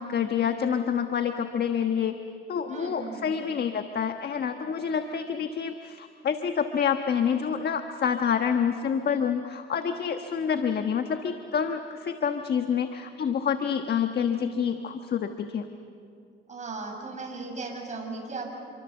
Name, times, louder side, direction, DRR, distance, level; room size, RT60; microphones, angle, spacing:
voice 1, 0.0-2.2 2.5-15.6, left 7 dB, 55° left, 6 dB, 1.3 m, -27 dB
voice 2, 2.7-3.5 16.5-18.6, right 3 dB, 35° right, 0 dB, 7.4 m, -37 dB
28.5 x 24.5 x 7.1 m, 2.5 s
cardioid pair, 90°, 20 cm